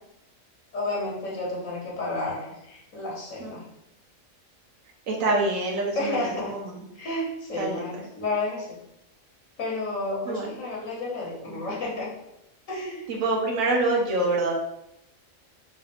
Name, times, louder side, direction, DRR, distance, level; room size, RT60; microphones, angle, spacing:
voice 1, 0.7-3.6 5.9-6.5 6.9-8.7 9.6-12.1 12.7-13.1, left 2 dB, 75° left, -4 dB, 1.6 m, -31 dB
voice 2, 5.1-6.7 7.6-7.8 10.3-10.6 13.1-14.5, right 2 dB, 80° right, -2 dB, 1.2 m, -26 dB
3.9 x 2.5 x 3.3 m, 0.85 s
omnidirectional pair, 1.4 m